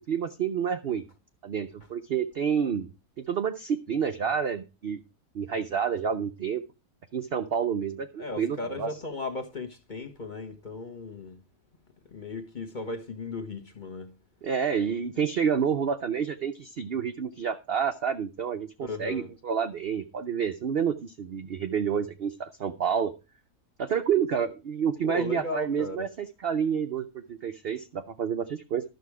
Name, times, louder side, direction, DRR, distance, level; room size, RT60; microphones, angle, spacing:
voice 1, 0.1-1.1 1.4-2.9 3.2-5.0 5.3-6.6 7.1-8.9 14.4-23.1 23.8-28.8, right 7 dB, 60° right, 0.6 m, -29 dB
voice 2, 8.2-11.4 12.1-14.1 18.8-19.3 25.0-26.1, left 3 dB, 35° left, 1.2 m, -36 dB
12.0 x 6.9 x 4.7 m
omnidirectional pair, 1.7 m